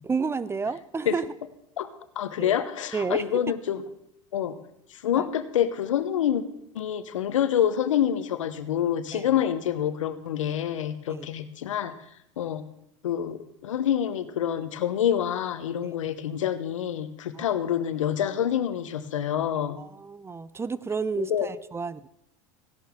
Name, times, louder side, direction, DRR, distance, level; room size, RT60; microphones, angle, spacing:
voice 1, 0.0-1.3 2.4-2.6 2.9-3.4 5.2-5.3 9.1-9.3 11.1-11.3 15.8-15.9 17.3-17.6 19.8-22.1, right 5 dB, 15° right, 17 dB, 0.5 m, -31 dB
voice 2, 2.2-3.8 4.3-4.6 5.0-6.4 6.7-11.9 12.4-12.6 13.0-19.8 21.2-21.5, left 10 dB, 85° left, 11 dB, 1.0 m, -27 dB
15.5 x 11.5 x 3.7 m, 0.78 s
hypercardioid pair, 90°, 16 cm